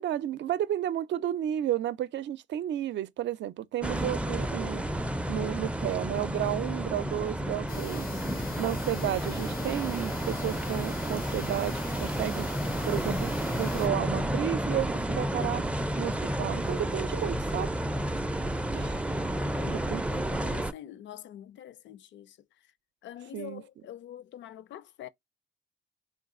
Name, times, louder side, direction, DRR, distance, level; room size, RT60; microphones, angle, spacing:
voice 1, 0.0-8.1 8.6-12.5 12.8-15.6 16.0-17.7 18.7-19.0 19.7-20.5 23.3-23.6, right 12 dB, 65° right, 0.5 m, -32 dB
sound 1, 3.8-20.7, right 1 dB, 5° right, 0.4 m, -31 dB
sound 2, 7.7-13.9, left 6 dB, 85° left, 1.1 m, -44 dB
voice 2, 19.2-22.4 23.0-25.1, left 11 dB, 70° left, 0.5 m, -45 dB
3.7 x 2.3 x 3.6 m
cardioid pair, 90°, 20 cm